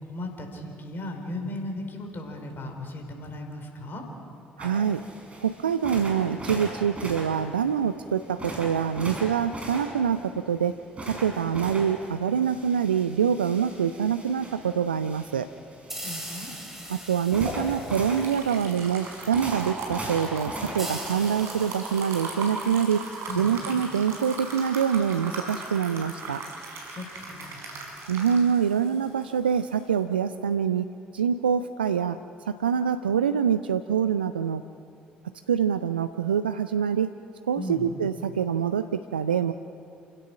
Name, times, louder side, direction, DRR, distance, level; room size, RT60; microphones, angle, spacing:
voice 1, 0.0-4.0 16.0-16.5 23.3-23.5 26.9-27.6 37.5-37.9, left 1 dB, 45° left, 4 dB, 4.8 m, -36 dB
sound 1, 4.6-21.7, right 1 dB, 25° right, 6.3 m, -40 dB
voice 2, 4.6-5.0 5.4-15.5 16.9-23.0 23.3-26.5 28.1-30.8 31.1-32.2 32.4-34.6 35.5-37.1 37.5-39.5, right 7 dB, 85° right, 11 dB, 0.4 m, -25 dB
sound 2, 15.9-19.3 20.8-24.3, equal, 5° right, 5.5 m, -42 dB
sound 3, 17.0-30.0, right 3 dB, 55° right, 5.6 m, -37 dB
28.5 x 16.5 x 6.3 m, 2.4 s
figure-of-eight pair, 50°, 5 cm